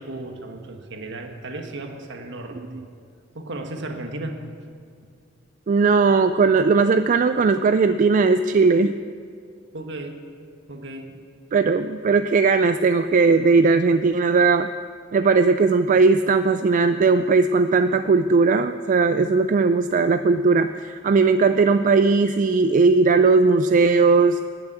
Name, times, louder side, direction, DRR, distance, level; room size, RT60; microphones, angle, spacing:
voice 1, 0.0-2.8 3.3-4.4 9.7-10.2 10.7-11.1, right 2 dB, 65° right, 4 dB, 1.5 m, -35 dB
voice 2, 5.7-8.9 11.5-14.7 15.1-24.4, right 4 dB, 40° right, 10 dB, 0.3 m, -18 dB
19.0 x 7.0 x 8.0 m, 2.2 s
head